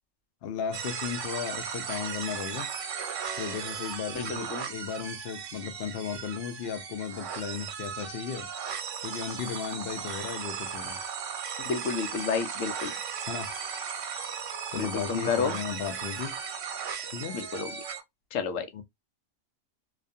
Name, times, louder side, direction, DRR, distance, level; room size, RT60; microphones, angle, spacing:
voice 1, 0.4-2.7 3.4-8.5 9.0-11.0 13.3-13.5 14.7-16.4 17.0-17.4 18.7-18.8, left 7 dB, 60° left, 0.7 m, -35 dB
sound 1, 0.7-18.0, right 7 dB, 80° right, 1.0 m, -36 dB
voice 2, 4.1-4.7 11.6-12.9 14.7-15.6 17.3-17.7 18.3-18.7, left 5 dB, 90° left, 1.0 m, -31 dB
2.5 x 2.3 x 2.5 m
omnidirectional pair, 1.3 m